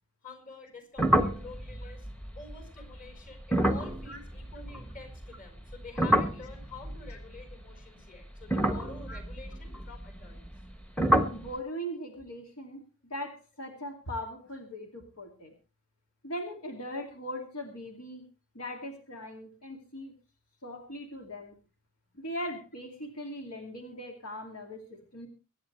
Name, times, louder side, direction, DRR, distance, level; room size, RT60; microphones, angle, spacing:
voice 1, 0.2-2.1 2.3-10.5, left 4 dB, 40° left, 5 dB, 4.6 m, -48 dB
sound 1, 1.0-5.3 5.6-7.8 8.4-10.7 11.0-11.5, right 1 dB, 5° left, 1.1 m, -29 dB
voice 2, 11.3-15.5 16.2-18.3 18.5-20.1 20.6-21.5 22.1-25.3, equal, 75° left, 2 dB, 2.5 m, -40 dB
24.0 x 10.0 x 3.2 m, 0.33 s
head